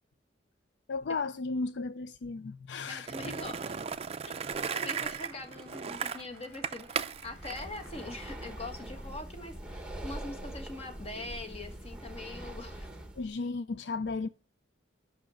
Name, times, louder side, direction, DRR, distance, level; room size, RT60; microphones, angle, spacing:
voice 1, 0.9-3.3 4.6-4.8 13.2-14.3, left 4 dB, 65° left, 0.4 m, -35 dB
voice 2, 2.9-3.8 4.3-4.4 4.7-12.9, left 2 dB, 35° left, 1.4 m, -43 dB
Skateboard, 3.1-8.5, right 6 dB, 35° right, 0.4 m, -36 dB
Applause / Crowd, 3.7-10.3, right 1 dB, 10° left, 3.6 m, -61 dB
Breathing, 7.2-13.3, right 1 dB, 5° right, 1.0 m, -43 dB
7.6 x 6.0 x 6.3 m
head